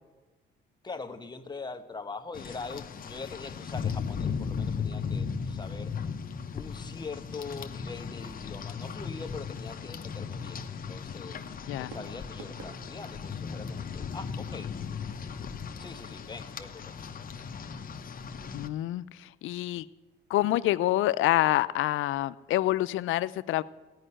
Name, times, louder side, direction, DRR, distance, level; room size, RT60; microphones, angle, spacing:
voice 1, 0.8-5.9 6.5-11.4 11.8-14.7 15.8-17.0, left 4 dB, 20° left, 7 dB, 1.1 m, -42 dB
Rain, 2.3-18.7, left 6 dB, 45° left, 0.8 m, -37 dB
Fireworks, 11.4-16.4, right 5 dB, 70° right, 1.8 m, -54 dB
voice 2, 18.5-19.9 20.3-23.6, left 15 dB, 80° left, 17 dB, 0.5 m, -27 dB
15.5 x 5.5 x 9.9 m, 1.2 s
cardioid pair, 90°, 20 cm